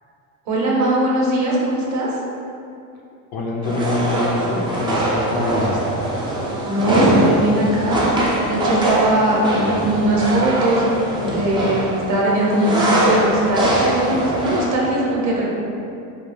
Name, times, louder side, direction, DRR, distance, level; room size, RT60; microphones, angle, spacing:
voice 1, 0.5-2.2 6.7-8.0 8.4-10.8 11.2-15.6, right 1 dB, 40° right, -4 dB, 0.7 m, -20 dB
voice 2, 3.3-5.8, left 2 dB, 55° left, -2 dB, 0.6 m, -24 dB
sound 1, 3.6-14.7, right 1 dB, 15° right, 0.3 m, -21 dB
2.4 x 2.2 x 3.1 m, 2.5 s
supercardioid pair, 90°, 43 cm